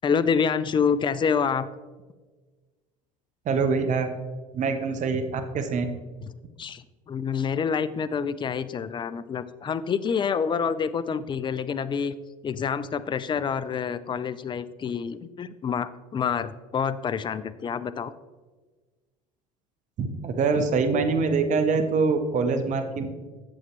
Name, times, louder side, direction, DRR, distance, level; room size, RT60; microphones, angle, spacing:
voice 1, 0.0-1.7 6.6-12.2 12.4-18.1, left 6 dB, 25° left, 14 dB, 0.5 m, -27 dB
voice 2, 3.5-4.1 4.5-5.8 20.0-23.1, right 4 dB, 45° right, 7 dB, 1.0 m, -24 dB
8.6 x 7.3 x 3.2 m, 1.3 s
hypercardioid pair, 70°, 18 cm